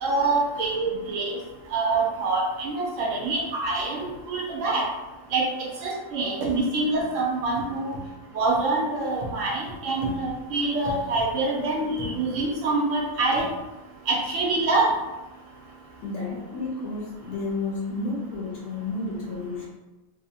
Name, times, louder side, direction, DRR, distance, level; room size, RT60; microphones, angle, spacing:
voice 1, 0.0-1.4 1.7-4.8 5.3-7.9 8.3-13.5 14.1-14.9, right 3 dB, 70° right, -2 dB, 0.9 m, -25 dB
voice 2, 16.0-19.7, left 3 dB, 65° left, -4 dB, 0.8 m, -31 dB
2.7 x 2.0 x 2.7 m, 1.0 s
omnidirectional pair, 1.5 m